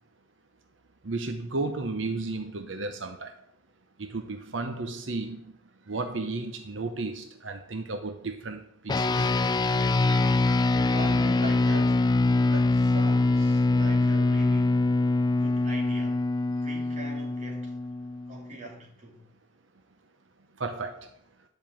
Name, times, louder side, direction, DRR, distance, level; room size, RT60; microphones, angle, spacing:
voice 1, 1.0-3.3 4.0-5.4 5.9-9.3 10.0-10.3 20.6-21.1, right 3 dB, 85° right, 0.9 m, -33 dB
sound 1, 8.9-18.5, left 2 dB, 20° left, 0.3 m, -24 dB
voice 2, 10.9-12.1 12.4-15.0 15.4-17.7 18.3-19.3, right 1 dB, 40° right, 2.7 m, -42 dB
10.5 x 5.4 x 7.6 m
head